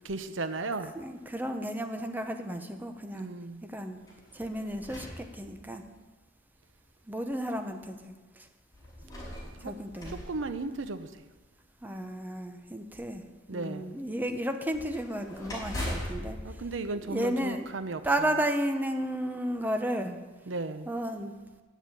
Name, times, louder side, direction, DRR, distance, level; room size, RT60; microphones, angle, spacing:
voice 1, 0.0-0.9 3.1-3.6 9.6-9.7 10.1-11.1 13.5-14.0 16.4-18.0 20.5-20.9, right 3 dB, 90° right, 10 dB, 0.8 m, -35 dB
voice 2, 0.9-3.3 3.6-4.0 4.3-5.8 7.1-8.5 9.6-10.2 11.8-13.2 13.5-16.6 16.9-17.7 18.0-20.2 20.9-21.3, right 1 dB, 10° right, 5 dB, 0.9 m, -33 dB
sound 1, 4.0-6.0 6.8-6.9 8.7-11.3 14.7-17.8, left 1 dB, 20° left, 5.1 m, -41 dB
10.0 x 7.3 x 8.9 m, 1.2 s
head